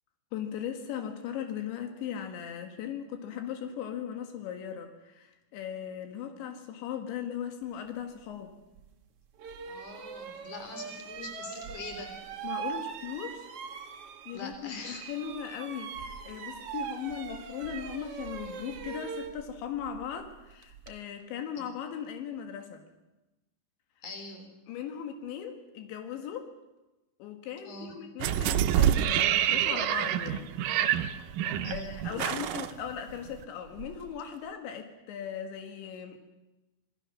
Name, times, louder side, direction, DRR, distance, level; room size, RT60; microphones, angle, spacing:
voice 1, 0.3-8.5 12.4-13.5 14.3-22.8 24.7-26.5 27.2-30.6 31.7-36.2, left 8 dB, 90° left, 5 dB, 4.1 m, -38 dB
sound 1, 8.8-8.9 9.4-14.6 14.8-21.0, right 7 dB, 70° right, 1.4 m, -41 dB
voice 2, 9.7-12.1 14.3-15.0 24.0-24.5 27.6-27.9 31.6-32.0, left 3 dB, 40° left, 5 dB, 4.4 m, -43 dB
sound 2, 28.2-33.4 33.8-33.9, right 11 dB, 85° right, 1.9 m, -27 dB
26.5 x 19.5 x 6.4 m, 1.0 s
omnidirectional pair, 5.1 m